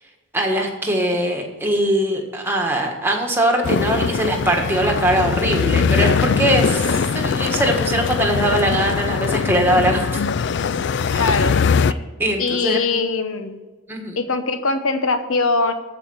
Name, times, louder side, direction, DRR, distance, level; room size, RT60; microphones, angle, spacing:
voice 1, 0.3-10.2 11.1-11.5 12.2-12.8 13.9-14.2, right 1 dB, 10° right, 1 dB, 1.5 m, -21 dB
sound 1, 3.6-11.9, left 5 dB, 50° left, 0.3 m, -21 dB
voice 2, 11.2-11.6 12.4-13.6 14.2-15.7, left 3 dB, 70° left, 8 dB, 1.0 m, -21 dB
13.0 x 5.1 x 8.7 m, 1.3 s
head